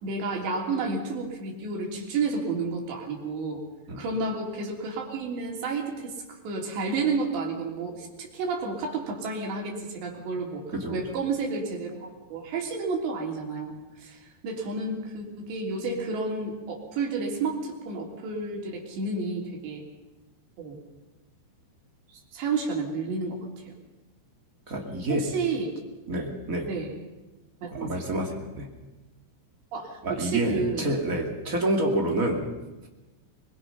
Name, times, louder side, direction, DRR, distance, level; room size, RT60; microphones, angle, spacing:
voice 1, 0.0-3.6 4.0-10.6 10.9-19.8 20.6-20.8 22.3-23.4 23.7-23.8 25.1-25.8 26.7-26.9 27.6-28.1 29.7-30.9, right 4 dB, 65° right, 0 dB, 5.3 m, -31 dB
voice 2, 10.7-11.1 24.7-25.3 26.1-26.7 27.7-28.7 30.0-32.5, right 1 dB, 35° right, 0 dB, 1.3 m, -28 dB
23.5 x 21.5 x 5.7 m, 1.1 s
omnidirectional pair, 5.5 m